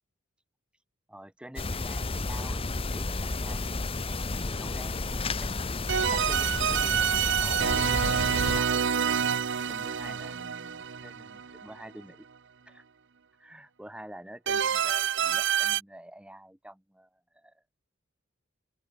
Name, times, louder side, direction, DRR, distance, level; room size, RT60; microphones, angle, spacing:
voice 1, 1.1-5.5 6.1-8.9 9.7-12.3 12.7-12.8 13.4-17.6, right 1 dB, 5° right, 0.9 m, -48 dB
sound 1, 1.6-8.6, left 3 dB, 30° left, 0.9 m, -32 dB
sound 2, 5.9-11.8 14.5-15.8, right 8 dB, 60° right, 0.8 m, -27 dB
open air
head